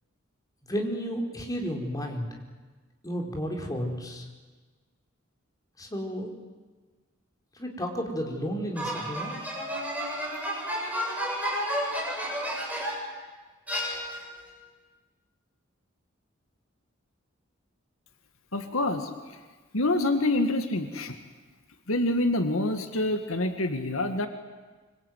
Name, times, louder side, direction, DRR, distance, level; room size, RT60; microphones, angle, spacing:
voice 1, 0.6-2.3 3.0-4.3 5.8-6.3 7.5-9.3, equal, 20° left, 1 dB, 4.3 m, -32 dB
sound 1, 8.8-13.2 13.7-14.4, equal, 10° right, 7.1 m, -31 dB
voice 2, 18.5-19.1 19.7-21.2 21.9-24.3, left 2 dB, 80° left, 6 dB, 2.2 m, -26 dB
25.5 x 24.0 x 9.4 m, 1.3 s
head